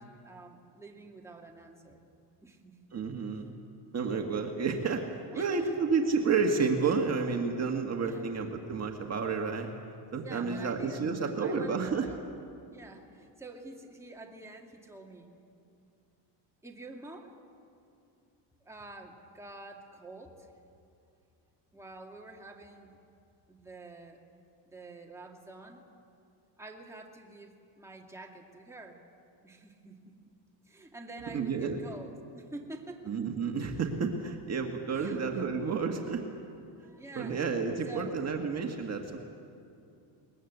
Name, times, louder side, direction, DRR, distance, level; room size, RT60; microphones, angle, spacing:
voice 1, 0.0-2.1 2.4-2.8 5.3-5.8 8.1-8.2 10.2-12.2 12.7-15.3 16.6-17.4 18.7-20.5 21.7-23.0 23.5-24.2 24.7-25.8 26.6-29.0 29.4-30.1 30.7-33.1 34.9-35.4 36.8-37.5 37.9-38.2, right 2 dB, 5° right, 0 dB, 2.2 m, -48 dB
voice 2, 2.9-3.6 3.9-5.1 5.3-9.7 10.1-12.1 31.3-31.8 33.1-36.3 37.2-39.2, right 5 dB, 35° right, 3 dB, 1.8 m, -30 dB
21.0 x 20.5 x 8.1 m, 2.6 s
cardioid pair, 115°, 45 cm